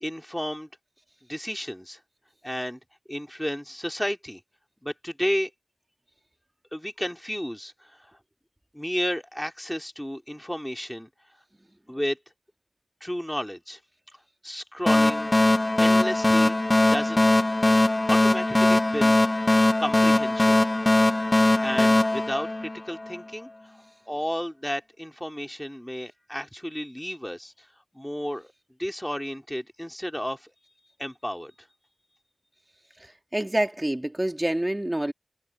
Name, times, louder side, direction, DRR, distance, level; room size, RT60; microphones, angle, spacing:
voice 1, 0.0-0.7 1.3-2.0 2.4-2.8 3.1-4.4 4.8-5.5 6.7-8.1 8.7-11.1 11.9-12.2 13.0-13.8 14.4-15.3 15.8-16.6 16.9-17.3 18.1-19.2 19.8-20.6 21.6-23.5 24.1-27.7 27.9-28.5 28.8-30.5 31.0-31.5, equal, 5° left, 2.2 m, -32 dB
sound 1, 14.9-23.2, left 2 dB, 30° left, 0.5 m, -21 dB
voice 2, 33.0-35.1, right 1 dB, 15° right, 2.1 m, -27 dB
wide cardioid pair, 75°, 0 cm